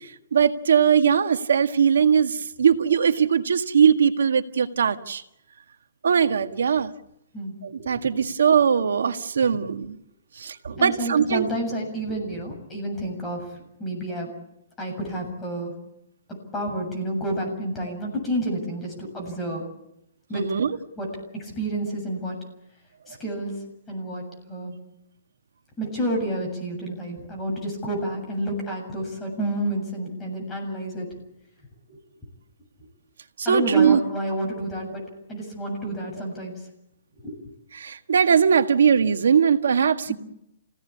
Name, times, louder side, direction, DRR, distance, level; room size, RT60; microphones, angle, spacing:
voice 1, 0.3-5.2 6.0-6.9 7.6-10.0 10.4-11.5 20.3-20.8 33.4-34.0 37.8-40.1, right 7 dB, 90° right, 8 dB, 1.8 m, -20 dB
voice 2, 10.7-13.5 13.8-14.3 14.8-15.7 16.5-19.6 20.3-20.4 21.0-21.1 21.3-22.3 23.1-23.5 23.9-24.8 25.8-31.1 31.9-32.0 33.4-35.0 35.3-36.5 37.2-37.3 40.1-40.2, right 1 dB, 10° left, -1 dB, 7.4 m, -30 dB
28.5 x 17.5 x 8.6 m, 0.83 s
hypercardioid pair, 165°, 0 cm